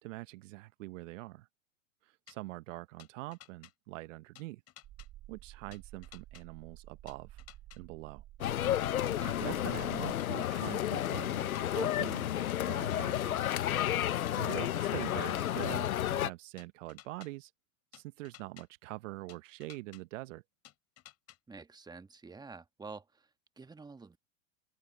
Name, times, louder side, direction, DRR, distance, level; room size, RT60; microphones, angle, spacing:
voice 1, 0.0-1.5 2.0-4.6 5.3-7.4 7.8-8.2 9.2-13.6 14.1-17.5 17.9-20.4, right 19 dB, 60° right, 0.9 m, -44 dB
sound 1, 2.3-2.4 3.0-3.7 4.3-5.1 5.7-6.4 7.1-7.8 8.4-9.1 9.8-10.5 11.1-11.9 12.5-13.2 13.9-14.6 15.2-15.9 16.6-17.3 17.9-18.6 19.3-20.0 20.6-21.4, left 12 dB, 35° left, 7.6 m, -55 dB
sound 2, 4.8-10.2, right 14 dB, 40° right, 7.8 m, -52 dB
sound 3, 8.4-16.3, left 12 dB, 85° left, 1.0 m, -32 dB
voice 2, 21.5-23.3 23.6-24.2, right 4 dB, 10° right, 1.4 m, -48 dB
open air
hypercardioid pair, 100°, 42 cm